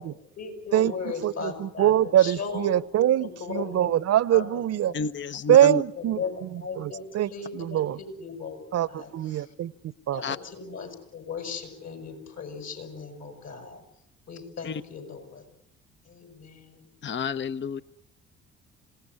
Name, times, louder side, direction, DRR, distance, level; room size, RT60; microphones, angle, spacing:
voice 1, 0.0-1.9 2.2-2.7 3.2-3.9 4.3-4.4 6.0-8.6 8.9-9.1 9.4-9.5 10.1-13.8 14.3-15.4 16.0-16.9, left 5 dB, 50° left, 7 dB, 6.8 m, -37 dB
voice 2, 0.7-4.9 5.5-8.0 8.7-10.2, right 12 dB, 50° right, 20 dB, 0.9 m, -24 dB
voice 3, 4.9-5.8 10.2-10.4 14.6-14.8 17.0-17.8, left 5 dB, 35° left, 14 dB, 0.9 m, -30 dB
26.5 x 18.0 x 9.9 m, 0.86 s
hypercardioid pair, 50°, 33 cm